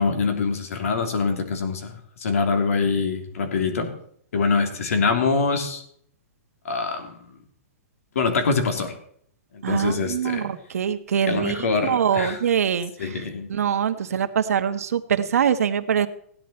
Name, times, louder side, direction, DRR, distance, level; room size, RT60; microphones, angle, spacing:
voice 1, 0.0-3.9 4.3-5.8 6.6-7.2 8.1-8.9 9.5-10.5 11.3-12.4 13.0-13.5, left 4 dB, 70° left, 5 dB, 3.1 m, -24 dB
voice 2, 9.6-13.2 13.5-16.1, right 8 dB, 75° right, 8 dB, 1.3 m, -24 dB
16.5 x 10.0 x 4.3 m, 0.64 s
hypercardioid pair, 170°, 8 cm